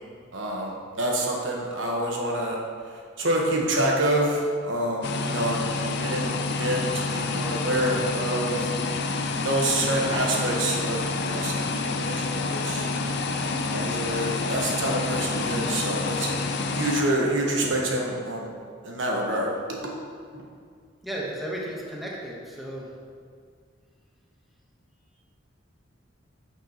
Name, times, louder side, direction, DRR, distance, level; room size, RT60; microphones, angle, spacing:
voice 1, 0.3-2.6 3.2-8.7 9.4-12.9 13.3-18.5 18.8-19.5 20.3-20.4, right 1 dB, 70° right, -1 dB, 1.3 m, -27 dB
sound 1, 5.0-17.0, left 3 dB, 60° left, 0.5 m, -28 dB
voice 2, 21.0-22.8, right 1 dB, ahead, -4 dB, 1.1 m, -34 dB
9.5 x 6.0 x 3.0 m, 2.1 s
head